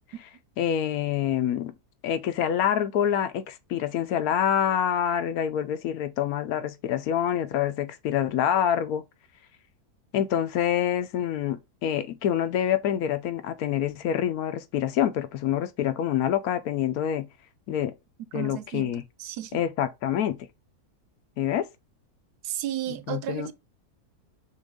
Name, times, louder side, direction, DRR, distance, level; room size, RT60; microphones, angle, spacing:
voice 1, 0.6-1.7 2.0-9.0 10.1-17.3 17.7-17.9 18.3-19.0 19.5-20.4 21.4-21.7 23.1-23.5, left 10 dB, 75° left, 1.0 m, -26 dB
voice 2, 18.3-18.9 19.2-19.6 22.4-23.5, right 12 dB, 90° right, 1.2 m, -33 dB
6.2 x 2.4 x 3.6 m
omnidirectional pair, 1.6 m